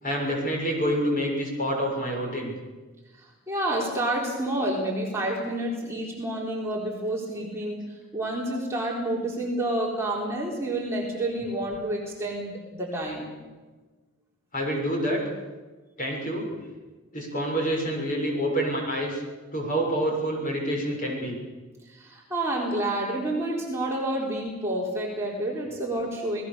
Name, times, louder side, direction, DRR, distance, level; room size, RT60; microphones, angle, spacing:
voice 1, 0.0-2.5 14.5-15.2 16.0-16.5 17.1-19.2 19.5-21.4, equal, 40° left, 0 dB, 6.7 m, -27 dB
voice 2, 3.5-7.8 8.1-13.3 19.7-19.8 21.9-26.4, right 1 dB, 10° right, -4 dB, 4.0 m, -29 dB
28.0 x 19.0 x 7.0 m, 1.3 s
head